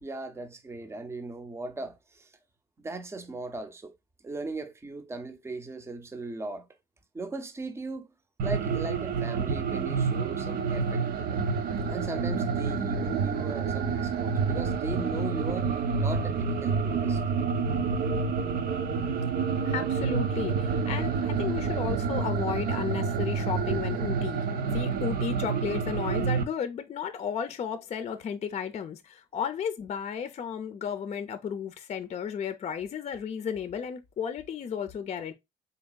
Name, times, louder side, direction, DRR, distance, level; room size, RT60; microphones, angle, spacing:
voice 1, 0.0-2.3 2.8-3.9 4.2-6.7 7.1-8.1 8.4-11.4 11.9-17.2, right 2 dB, 15° right, 0.7 m, -38 dB
sound 1, 8.4-26.4, right 5 dB, 60° right, 0.7 m, -28 dB
voice 2, 19.6-24.5 24.7-35.3, left 7 dB, 40° left, 0.5 m, -33 dB
4.0 x 3.5 x 2.2 m
cardioid pair, 110°, 17 cm